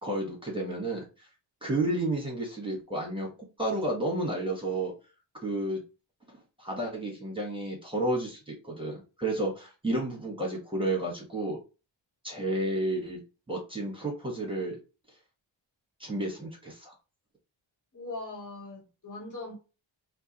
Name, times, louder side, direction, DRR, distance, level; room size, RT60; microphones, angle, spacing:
voice 1, 0.0-1.3 1.6-3.3 3.6-4.9 5.4-5.8 6.6-11.6 12.2-13.2 13.5-14.8 16.0-16.9, right 1 dB, 10° right, 1.5 m, -31 dB
voice 2, 17.9-19.6, left 2 dB, 40° left, 1.4 m, -40 dB
4.4 x 2.3 x 2.9 m
wide cardioid pair, 75°, 49 cm